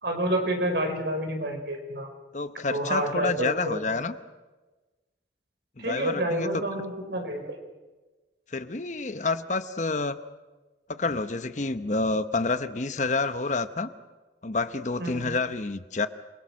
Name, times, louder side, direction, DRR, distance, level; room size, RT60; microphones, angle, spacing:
voice 1, 0.0-2.1 2.7-3.8 5.8-7.5 15.0-15.3, right 1 dB, 70° right, 4 dB, 5.0 m, -29 dB
voice 2, 2.3-4.1 5.8-6.7 8.5-10.2 10.9-13.9 14.4-16.1, left 3 dB, 45° left, 11 dB, 0.9 m, -28 dB
27.5 x 22.5 x 6.4 m, 1.2 s
head